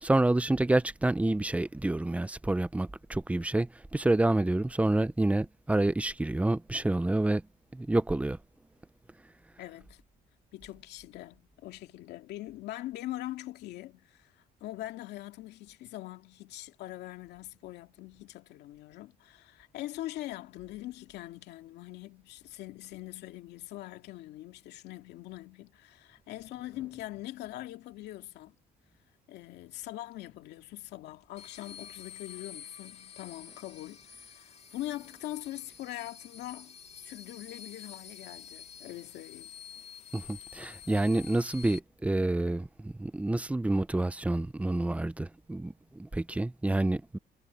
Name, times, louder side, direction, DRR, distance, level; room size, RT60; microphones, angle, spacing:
voice 1, 0.0-7.4 7.7-8.4 40.1-47.2, right 2 dB, 10° right, 0.7 m, -28 dB
voice 2, 9.6-10.0 10.5-28.6 29.3-36.8 37.0-39.5, left 15 dB, 80° left, 2.5 m, -42 dB
sound 1, 31.4-41.8, left 8 dB, 40° left, 2.6 m, -49 dB
cardioid pair, 110°, 17 cm